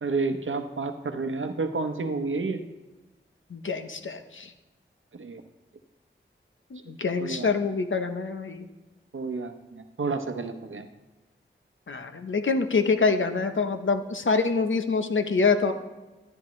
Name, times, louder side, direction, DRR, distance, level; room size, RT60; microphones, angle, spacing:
voice 1, 0.0-2.6 5.1-5.4 7.2-7.5 9.1-10.9, right 3 dB, 80° right, 7 dB, 0.9 m, -30 dB
voice 2, 3.5-4.5 6.7-8.7 11.9-15.7, left 4 dB, 75° left, 8 dB, 0.8 m, -25 dB
12.5 x 9.9 x 3.2 m, 1.1 s
cardioid pair, 40°, 20 cm